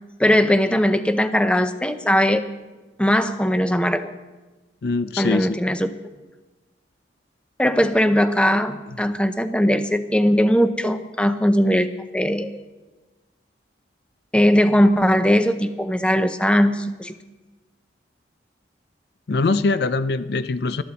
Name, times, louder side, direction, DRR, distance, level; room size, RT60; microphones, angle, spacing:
voice 1, 0.2-2.4 3.0-4.1 5.2-5.9 7.6-12.6 14.3-17.2, equal, 5° left, 9 dB, 0.6 m, -19 dB
voice 2, 4.8-5.6 9.0-9.1 19.3-20.8, left 3 dB, 55° left, 13 dB, 0.5 m, -23 dB
20.5 x 13.0 x 4.1 m, 1.2 s
head